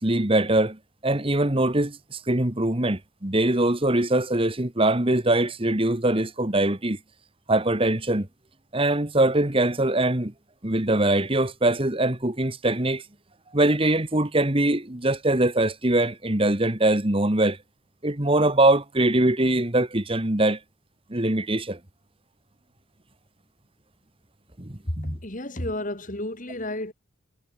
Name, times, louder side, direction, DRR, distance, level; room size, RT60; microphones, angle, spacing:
voice 1, 0.0-7.0 7.5-8.3 8.7-10.3 10.6-13.0 13.5-17.6 18.0-20.6 21.1-21.8 24.6-25.2, right 1 dB, 25° right, 1.6 m, -22 dB
voice 2, 24.9-26.9, left 1 dB, 40° left, 3.4 m, -31 dB
head